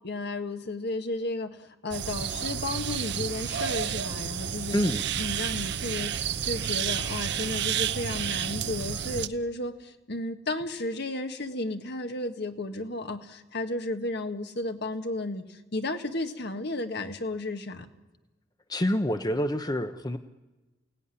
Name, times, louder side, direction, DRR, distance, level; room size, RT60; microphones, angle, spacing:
voice 1, 0.0-4.8 5.2-17.9, left 2 dB, 60° left, 7 dB, 1.6 m, -33 dB
sound 1, 1.9-9.3, right 8 dB, 60° right, 0.8 m, -31 dB
voice 2, 4.7-5.0 18.7-20.2, equal, 20° left, 8 dB, 0.8 m, -27 dB
28.5 x 17.5 x 9.9 m, 1.2 s
head